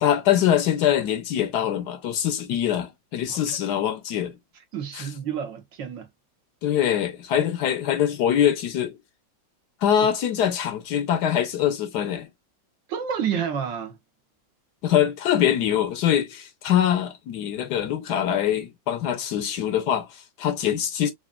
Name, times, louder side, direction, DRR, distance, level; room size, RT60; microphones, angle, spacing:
voice 1, 0.0-4.3 4.9-5.1 6.6-9.0 9.8-12.3 14.8-21.1, left 10 dB, 70° left, 1.2 m, -23 dB
voice 2, 4.7-6.1 10.0-10.1 12.9-14.0, right 8 dB, 80° right, 1.8 m, -30 dB
4.9 x 2.6 x 2.3 m
omnidirectional pair, 2.0 m